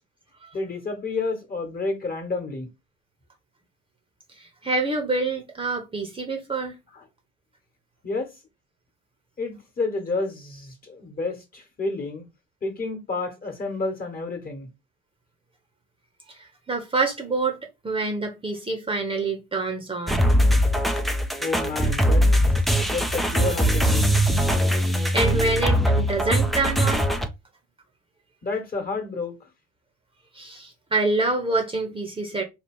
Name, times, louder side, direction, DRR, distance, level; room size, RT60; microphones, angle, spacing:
voice 1, 0.5-2.7 6.9-7.0 8.0-8.3 9.4-12.2 12.6-14.7 21.4-22.3 22.9-24.0 28.4-29.3, left 3 dB, 30° left, 1.3 m, -30 dB
voice 2, 4.4-6.7 16.3-17.6 17.8-20.2 25.1-27.1 30.3-32.4, right 3 dB, 15° right, 0.9 m, -26 dB
sound 1, 20.1-27.3, equal, ahead, 0.5 m, -21 dB
4.5 x 2.3 x 3.6 m
figure-of-eight pair, 55°, 32 cm